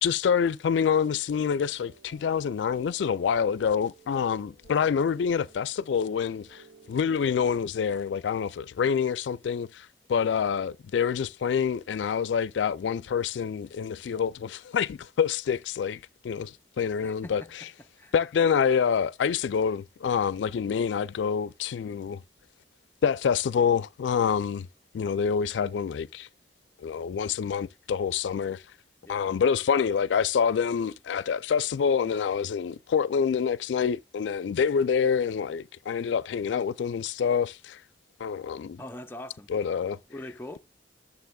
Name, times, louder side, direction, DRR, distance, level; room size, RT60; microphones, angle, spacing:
voice 1, 0.0-6.6 6.9-17.6 18.1-22.2 23.0-24.7 24.9-26.3 26.8-28.6 29.1-37.8 38.2-38.8 39.5-40.0, left 7 dB, 85° left, 0.3 m, -27 dB
sound 1, 1.0-7.3, right 2 dB, 90° right, 1.5 m, -56 dB
voice 2, 17.0-17.5 17.8-18.1 29.0-29.3 38.8-39.5 40.1-40.6, left 1 dB, 10° left, 0.5 m, -42 dB
11.5 x 7.1 x 2.2 m
head